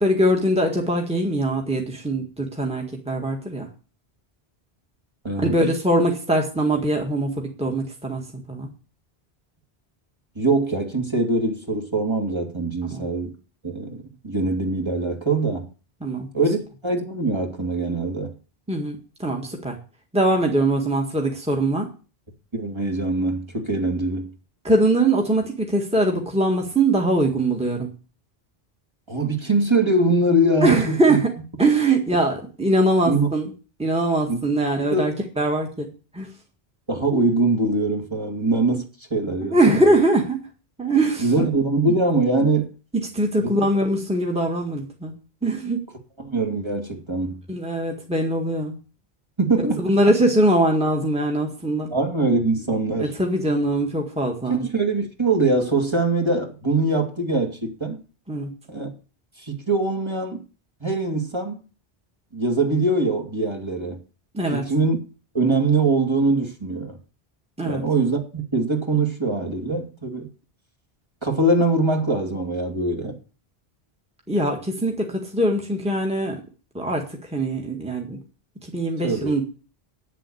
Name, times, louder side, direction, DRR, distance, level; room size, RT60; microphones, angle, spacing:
voice 1, 0.0-3.7 5.4-8.2 8.5-8.7 12.9-13.0 16.0-16.3 18.7-19.7 20.1-21.9 24.6-27.9 30.6-31.3 31.6-33.5 33.8-35.9 36.1-36.3 39.4-40.4 40.8-41.3 43.1-45.1 45.4-45.8 47.5-48.8 49.8-51.9 53.0-54.6 58.3-58.5 64.3-64.6 67.6-67.8 74.3-76.4 76.7-77.0 77.3-78.2 78.7-79.4, right 1 dB, 5° right, 1.9 m, -22 dB
voice 2, 10.4-13.3 13.6-15.7 16.3-16.6 16.8-18.3 22.5-24.3 29.1-31.2 33.1-33.3 34.3-34.6 34.9-35.1 36.9-40.0 41.2-42.7 43.4-43.5 46.2-47.4 49.4-49.9 51.9-53.1 54.5-58.0 58.7-58.9 59.4-60.4 60.8-61.6 62.3-64.0 64.5-65.0 65.3-67.0 67.6-70.3 71.2-73.2 79.0-79.3, right 2 dB, 25° right, 2.3 m, -23 dB
9.2 x 7.6 x 8.6 m
omnidirectional pair, 1.0 m